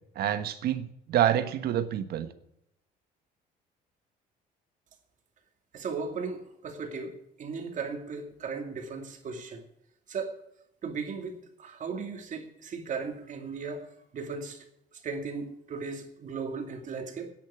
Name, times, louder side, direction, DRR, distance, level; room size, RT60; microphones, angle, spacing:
voice 1, 0.1-2.3, right 10 dB, 70° right, 1.3 m, -27 dB
voice 2, 5.7-9.6 10.1-10.4 10.8-13.9 14.1-14.7 15.0-17.3, right 5 dB, 50° right, 2.5 m, -36 dB
10.5 x 8.5 x 9.8 m
cardioid pair, 110°, 17 cm